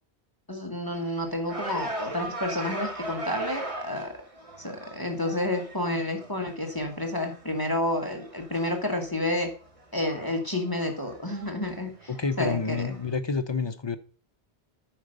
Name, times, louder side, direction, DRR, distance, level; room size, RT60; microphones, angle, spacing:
voice 1, 0.5-4.1 4.6-9.5 9.9-11.9 12.4-12.9, left 1 dB, 20° left, 1.4 m, -30 dB
sound 1, 0.9-13.2, right 2 dB, 30° right, 1.4 m, -40 dB
voice 2, 12.1-14.0, left 4 dB, 35° left, 0.5 m, -29 dB
8.8 x 5.1 x 6.5 m
omnidirectional pair, 1.1 m